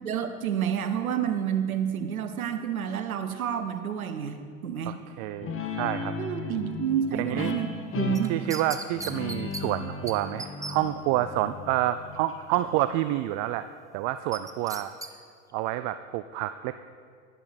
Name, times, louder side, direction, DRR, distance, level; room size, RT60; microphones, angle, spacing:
voice 1, 0.0-5.0 6.2-8.4, right 8 dB, 90° right, 9 dB, 0.8 m, -29 dB
voice 2, 4.9-6.2 7.2-7.6 8.3-13.6 13.9-14.9 15.5-16.8, right 14 dB, 50° right, 12 dB, 0.4 m, -28 dB
Guitar, 5.4-12.6, left 4 dB, 30° left, 1.3 m, -35 dB
sound 1, 8.1-9.6 10.1-10.2 10.4-10.7 14.3-15.1 15.5-15.6, right 3 dB, 10° right, 0.7 m, -37 dB
11.0 x 10.5 x 4.1 m, 2.1 s
hypercardioid pair, 75°, 41 cm